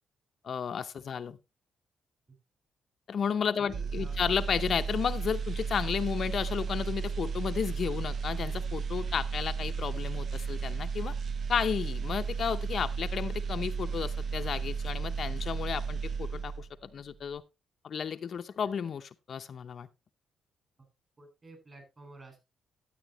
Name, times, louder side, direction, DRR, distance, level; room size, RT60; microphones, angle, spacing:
voice 1, 0.4-1.4 3.1-11.1 11.5-17.4 17.8-19.9, left 7 dB, 55° left, 8 dB, 0.7 m, -33 dB
voice 2, 3.6-4.2 21.2-22.4, right 2 dB, 30° right, 6 dB, 7.0 m, -51 dB
sound 1, 3.7-16.9 17.2-17.4, right 5 dB, 50° right, 0.7 m, -34 dB
12.5 x 9.1 x 3.0 m, 0.24 s
cardioid pair, 90°, 0 cm